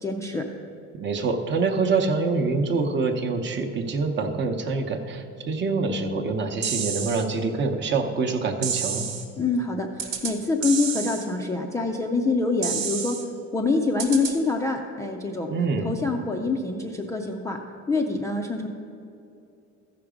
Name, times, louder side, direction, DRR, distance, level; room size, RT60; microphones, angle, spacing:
voice 1, 0.0-0.4 9.4-13.2 13.5-15.5 15.8-17.6 17.9-18.7, left 3 dB, 10° left, 1 dB, 0.3 m, -25 dB
voice 2, 1.0-9.1 15.5-15.9, right 4 dB, 35° right, 5 dB, 0.8 m, -25 dB
sound 1, 6.6-7.2 8.6-9.2 10.0-10.3 10.6-11.2 12.6-13.2 14.0-14.3, right 6 dB, 90° right, 1.4 m, -29 dB
14.5 x 5.9 x 5.0 m, 2.7 s
cardioid pair, 180°, 32 cm